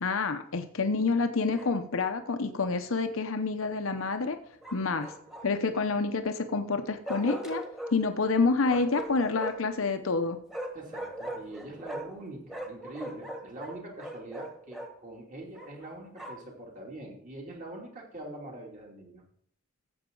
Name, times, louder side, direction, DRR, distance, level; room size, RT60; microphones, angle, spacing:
voice 1, 0.0-4.4 4.7-5.1 5.4-7.6 7.9-10.4, left 4 dB, 85° left, 8 dB, 0.8 m, -28 dB
Bark, 1.5-2.2 4.6-5.7 7.1-8.0 8.6-9.7 10.5-12.2 12.5-14.9 15.6-16.5, right 1 dB, ahead, 1.4 m, -40 dB
voice 2, 10.7-19.2, right 1 dB, 40° right, -1 dB, 2.8 m, -43 dB
14.0 x 7.9 x 3.9 m, 0.63 s
head